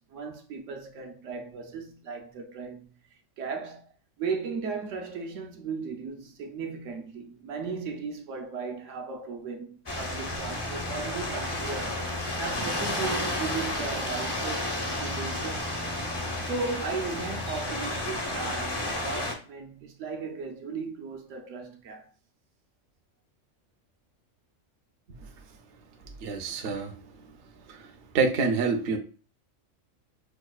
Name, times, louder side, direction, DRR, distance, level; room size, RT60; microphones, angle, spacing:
voice 1, 0.1-2.9 3.4-3.9 4.2-15.8 16.4-22.1, right 4 dB, 80° right, 1.0 m, -36 dB
sound 1, 9.9-19.3, left 1 dB, 30° left, 0.5 m, -31 dB
voice 2, 26.2-26.9 27.7-27.9 28.1-29.0, right 4 dB, 60° right, 0.7 m, -26 dB
4.7 x 2.3 x 2.3 m
omnidirectional pair, 1.3 m